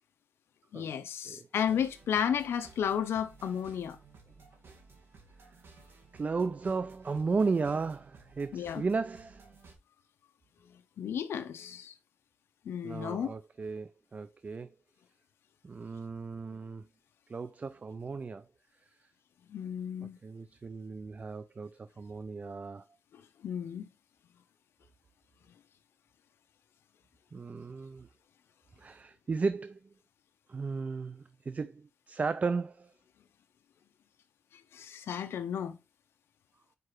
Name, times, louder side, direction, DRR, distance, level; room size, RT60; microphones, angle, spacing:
voice 1, 0.7-4.0 8.5-8.8 11.0-11.9 12.7-13.3 19.5-20.2 23.4-23.8 34.7-35.8, left 8 dB, 85° left, 0.6 m, -33 dB
sound 1, 1.7-9.7, right 4 dB, 70° right, 2.2 m, -56 dB
voice 2, 6.1-9.4 12.8-14.7 15.6-16.8 17.3-18.4 20.2-22.8 27.3-28.1 28.8-29.8 30.5-32.9, right 4 dB, 35° right, 0.4 m, -35 dB
4.8 x 4.7 x 4.7 m
cardioid pair, 85°, 4 cm